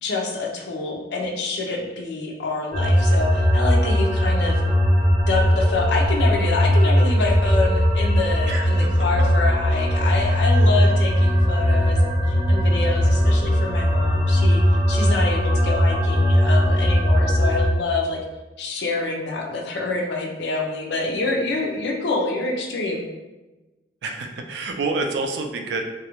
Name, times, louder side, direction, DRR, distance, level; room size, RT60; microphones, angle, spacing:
voice 1, 0.0-4.6 5.3-14.6 14.9-18.2 18.6-23.0, left 3 dB, 70° left, 1 dB, 0.5 m, -27 dB
sound 1, 2.7-17.7, equal, 5° left, 0.7 m, -19 dB
voice 2, 8.5-8.9 24.0-25.8, right 3 dB, 70° right, 4 dB, 0.3 m, -28 dB
2.3 x 2.0 x 2.9 m, 1.1 s
head